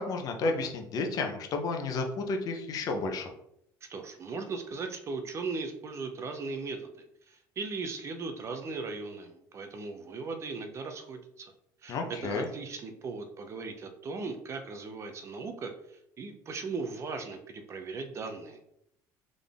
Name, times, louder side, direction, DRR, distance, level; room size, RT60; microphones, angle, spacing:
voice 1, 0.0-3.3 11.9-12.5, left 3 dB, 50° left, 4 dB, 0.9 m, -31 dB
voice 2, 3.9-11.5 11.8-15.7 16.2-18.6, right 4 dB, 35° right, 6 dB, 0.7 m, -38 dB
3.8 x 3.8 x 3.5 m, 0.75 s
cardioid pair, 125°, 8 cm